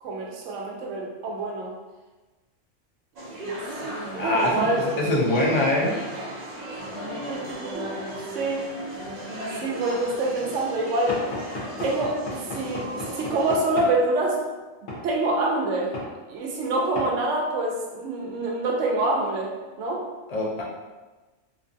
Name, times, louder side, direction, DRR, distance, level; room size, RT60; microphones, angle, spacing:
voice 1, 0.0-1.7 3.2-3.5 3.8-5.1 7.0-7.9 8.3-8.7 9.6-11.2 11.8-14.4 15.0-15.9 16.3-20.1, right 2 dB, 80° right, 0 dB, 0.9 m, -26 dB
sound 1, 3.2-13.6, right 1 dB, 55° right, 0.5 m, -36 dB
voice 2, 4.1-4.7 5.0-5.9 20.3-20.6, left 1 dB, 45° left, -4 dB, 0.5 m, -23 dB
Knock / Wood, 11.1-14.0 14.9-15.1 15.9-16.1 17.0-17.1, left 2 dB, 85° left, 1.2 m, -34 dB
2.9 x 2.3 x 2.5 m, 1.2 s
omnidirectional pair, 1.2 m